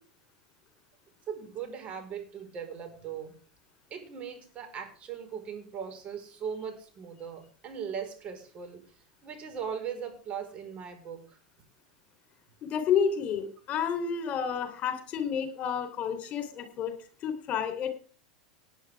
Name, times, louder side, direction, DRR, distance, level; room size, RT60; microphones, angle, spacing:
voice 1, 1.3-3.3 3.9-8.8 9.2-11.4, right 7 dB, 35° right, 4 dB, 4.9 m, -39 dB
voice 2, 12.6-16.9 17.2-17.9, left 7 dB, 40° left, 7 dB, 3.6 m, -30 dB
18.5 x 10.0 x 3.6 m, 0.40 s
figure-of-eight pair, 85°, 4 cm